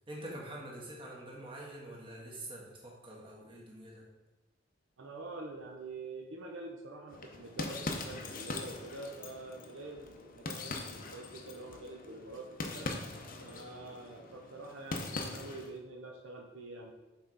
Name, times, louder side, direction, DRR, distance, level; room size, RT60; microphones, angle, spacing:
voice 1, 0.1-4.1, right 1 dB, 25° right, -3 dB, 1.3 m, -46 dB
voice 2, 5.0-12.9 13.4-16.9, right 2 dB, 75° right, 1 dB, 0.7 m, -46 dB
sound 1, 7.1-15.8, left 3 dB, 45° left, 0.6 m, -42 dB
5.6 x 4.4 x 3.9 m, 1.1 s
head